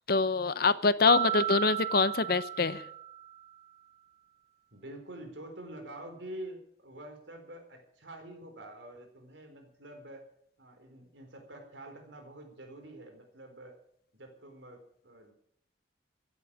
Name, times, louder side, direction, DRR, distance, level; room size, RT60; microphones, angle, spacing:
voice 1, 0.1-2.8, left 4 dB, 55° left, 15 dB, 0.8 m, -25 dB
Mallet percussion, 1.1-3.4, right 12 dB, 35° right, 0.8 m, -34 dB
voice 2, 4.7-10.2 10.6-13.8 14.1-15.3, right 1 dB, 90° right, 5 dB, 4.1 m, -47 dB
15.5 x 8.6 x 8.8 m, 0.71 s
head